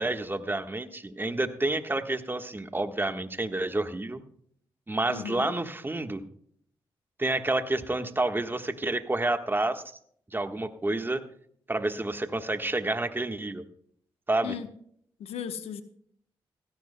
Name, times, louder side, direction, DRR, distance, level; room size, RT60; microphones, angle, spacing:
voice 1, 0.0-4.2 4.9-6.2 7.2-9.8 10.3-11.2 11.7-13.6 14.3-14.5, right 2 dB, 20° right, 1.3 m, -29 dB
voice 2, 5.1-5.5 14.4-14.7 15.2-15.8, left 8 dB, 85° left, 1.0 m, -36 dB
16.5 x 15.0 x 2.2 m
cardioid pair, 55°, 10 cm